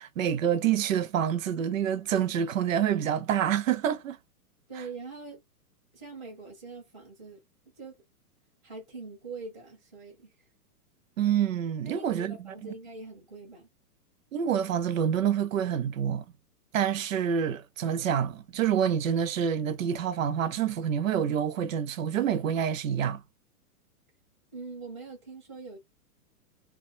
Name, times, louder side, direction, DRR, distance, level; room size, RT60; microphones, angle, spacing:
voice 1, 0.0-4.2 11.2-12.7 14.3-16.2 16.7-23.2, right 9 dB, 60° right, 0.5 m, -27 dB
voice 2, 4.7-5.4 5.9-7.4 7.8-8.0 8.6-10.3 11.8-13.7 24.5-25.8, right 3 dB, ahead, 0.6 m, -43 dB
2.3 x 2.2 x 2.6 m
hypercardioid pair, 170°, 46 cm